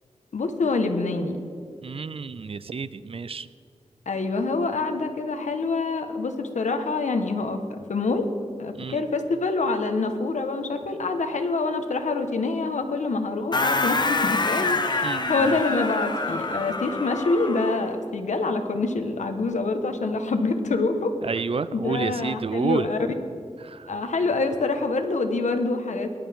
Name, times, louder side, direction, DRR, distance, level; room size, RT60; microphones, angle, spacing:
voice 1, 0.3-1.4 4.1-8.3 8.6-21.1 21.7-23.0 23.9-26.1, left 3 dB, 85° left, 7 dB, 1.3 m, -26 dB
voice 2, 1.8-3.5 8.8-9.0 15.0-15.6 21.2-22.9 23.6-23.9, right 5 dB, 50° right, 15 dB, 0.5 m, -30 dB
sound 1, 13.5-17.9, left 3 dB, 35° left, 1.0 m, -26 dB
20.0 x 11.5 x 3.6 m, 2.4 s
wide cardioid pair, 90°, 12 cm